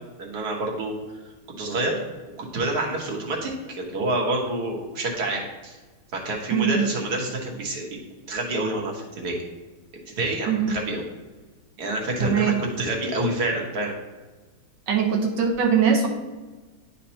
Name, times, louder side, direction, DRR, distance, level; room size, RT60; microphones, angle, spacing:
voice 1, 0.2-0.9 1.6-2.0 2.4-5.8 6.1-8.0 8.3-9.4 10.1-11.0 11.8-13.9, right 2 dB, 50° right, -1 dB, 1.6 m, -27 dB
voice 2, 6.5-6.9 10.5-10.8 12.2-12.6 14.9-16.1, right 7 dB, 65° right, 2 dB, 1.2 m, -21 dB
10.5 x 4.2 x 2.8 m, 1.3 s
omnidirectional pair, 2.4 m